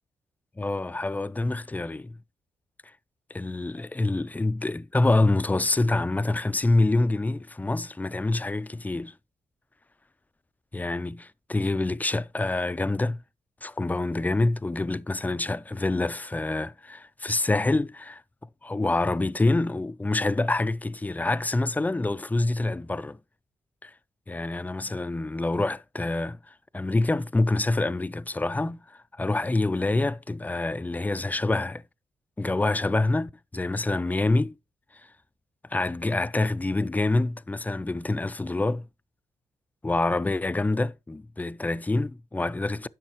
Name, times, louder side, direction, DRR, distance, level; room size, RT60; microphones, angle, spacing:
voice 1, 0.6-2.2 3.3-9.1 10.7-13.2 13.6-18.2 18.6-23.2 23.8-23.9 24.3-31.8 32.4-34.5 35.7-38.9 39.8-42.9, left 2 dB, 15° left, 0.4 m, -26 dB
10.5 x 6.3 x 3.0 m
cardioid pair, 60°, 11 cm